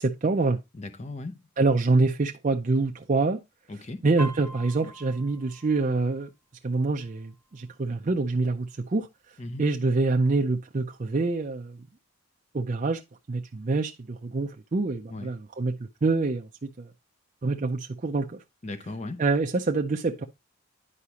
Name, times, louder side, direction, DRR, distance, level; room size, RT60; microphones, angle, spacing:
voice 1, 0.0-0.6 1.6-3.4 4.0-6.3 6.6-9.1 9.6-11.8 12.5-13.0 13.3-15.7 16.0-16.9 17.4-18.4 19.2-20.2, right 3 dB, 35° right, 0.5 m, -26 dB
voice 2, 0.7-1.4 3.7-4.1 9.4-9.6 15.1-15.3 18.6-19.2, left 2 dB, 30° left, 0.6 m, -37 dB
Piano, 4.2-7.8 8.2-8.6 8.9-9.6 10.2-10.3 10.5-11.5 11.9-12.0, equal, 15° left, 2.0 m, -44 dB
9.8 x 4.8 x 2.9 m
head